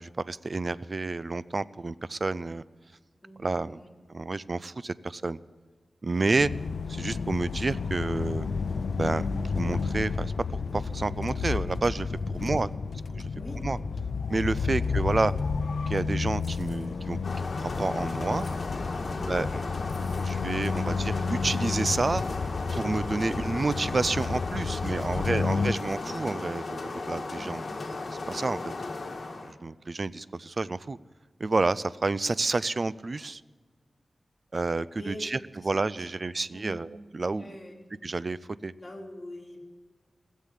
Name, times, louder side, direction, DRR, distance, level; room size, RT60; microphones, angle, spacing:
voice 1, 0.0-2.6 3.4-3.8 4.1-5.4 6.0-6.5 6.9-8.5 9.0-9.3 9.5-12.7 13.1-13.3 13.6-13.8 14.3-15.3 15.9-17.2 17.6-18.5 19.3-19.6 20.2-22.2 22.7-27.6 28.3-28.6 29.4-31.0 31.4-33.4 34.5-35.4 35.6-36.9 37.1-37.6 38.0-38.4 38.6-38.7, right 3 dB, 40° right, 17 dB, 0.4 m, -29 dB
voice 2, 3.2-3.9 6.1-6.3 12.3-12.5 13.4-14.0 19.0-19.3 23.2-23.4 24.6-26.1 27.3-27.5 28.6-28.7 35.0-35.4 36.0-36.1 36.5-36.8 37.3-37.8 38.8-39.6, equal, 15° left, -6 dB, 3.7 m, -45 dB
sound 1, 6.4-25.7, left 4 dB, 85° left, 0.6 m, -31 dB
sound 2, 16.3-17.0 18.3-18.9 19.7-20.4 20.6-20.9, left 2 dB, 35° left, 3.6 m, -53 dB
sound 3, 17.2-29.5, left 3 dB, 55° left, 1.6 m, -36 dB
16.5 x 7.5 x 9.9 m, 1.5 s
wide cardioid pair, 120°, 0 cm